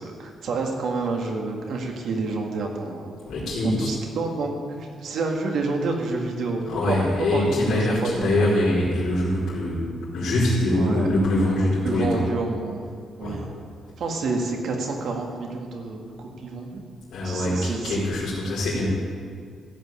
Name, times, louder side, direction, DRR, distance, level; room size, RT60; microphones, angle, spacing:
voice 1, 0.0-3.2 3.6-7.0 7.3-8.5 10.7-11.1 11.8-13.5 14.0-16.8 17.2-18.0, right 3 dB, 65° right, 1 dB, 2.0 m, -29 dB
voice 2, 3.2-3.9 6.7-9.9 10.1-12.2 13.2-13.4 17.1-18.9, left 1 dB, 80° left, -10 dB, 3.9 m, -23 dB
15.5 x 5.5 x 8.4 m, 2.2 s
cardioid pair, 130°, 0 cm